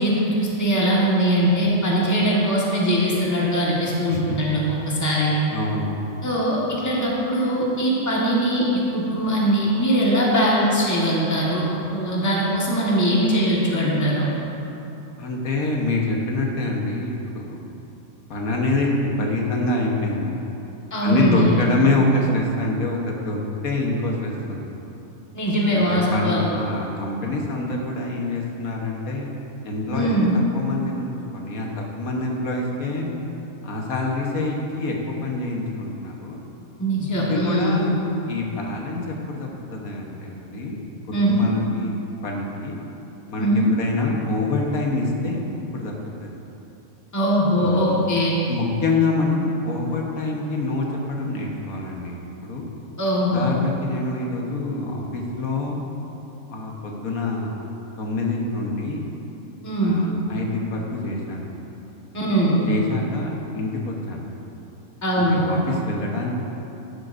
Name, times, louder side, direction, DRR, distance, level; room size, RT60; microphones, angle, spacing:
voice 1, 0.0-5.3 6.2-14.3 20.9-21.5 25.3-26.4 29.9-30.3 36.8-37.8 41.1-41.5 43.4-43.7 47.1-48.3 53.0-53.5 59.6-60.0 62.1-62.6 65.0-65.4, equal, 15° left, -6 dB, 1.5 m, -21 dB
voice 2, 5.5-6.0 15.2-17.6 18.3-20.3 21.0-24.7 25.7-29.3 29.6-33.1 33.6-36.4 37.2-37.9 38.3-40.8 41.2-42.0 42.2-42.7 43.3-45.4 45.7-45.9 46.2-46.4 47.6-48.0 48.5-52.1 52.4-52.6 53.3-55.8 56.5-57.5 58.0-59.0 59.8-61.5 62.7-64.3 65.2-66.3, left 2 dB, 80° left, -1 dB, 1.6 m, -26 dB
11.5 x 10.5 x 2.6 m, 3.0 s
omnidirectional pair, 1.5 m